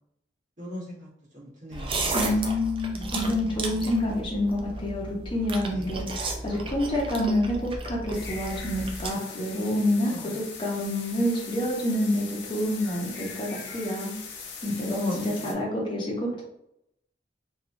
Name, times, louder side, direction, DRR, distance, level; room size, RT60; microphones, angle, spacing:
voice 1, 0.6-1.1 1.3-2.0 2.9-3.8 5.7-5.9 10.1-10.3 14.9-15.6, left 1 dB, 45° right, -6 dB, 1.2 m, -37 dB
sound 1, 1.7-9.1, right 2 dB, 30° right, 0.4 m, -33 dB
voice 2, 2.1-14.1 14.6-16.4, left 1 dB, 30° left, -4 dB, 0.6 m, -28 dB
sound 2, 8.1-15.5, left 5 dB, 75° left, 0.5 m, -41 dB
2.9 x 2.3 x 2.5 m, 0.79 s
head